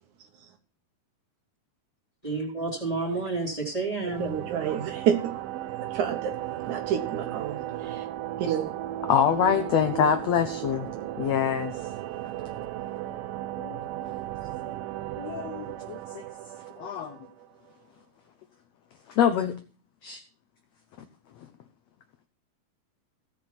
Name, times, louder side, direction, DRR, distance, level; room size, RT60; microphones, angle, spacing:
voice 1, 2.2-4.4, right 3 dB, 10° left, 0 dB, 3.2 m, -30 dB
voice 2, 4.0-5.5 5.8-6.3 6.6-8.0 8.4-8.7, right 9 dB, 65° right, 6 dB, 2.4 m, -29 dB
sound 1, 4.1-17.7, right 13 dB, 85° right, 2.5 m, -35 dB
voice 3, 9.1-10.9 11.2-11.7 13.6-13.8 15.2-16.2 16.8-17.2 19.1-19.5 20.0-20.2, left 8 dB, 75° left, 8 dB, 1.6 m, -25 dB
16.5 x 6.0 x 5.9 m, 0.38 s
omnidirectional pair, 4.0 m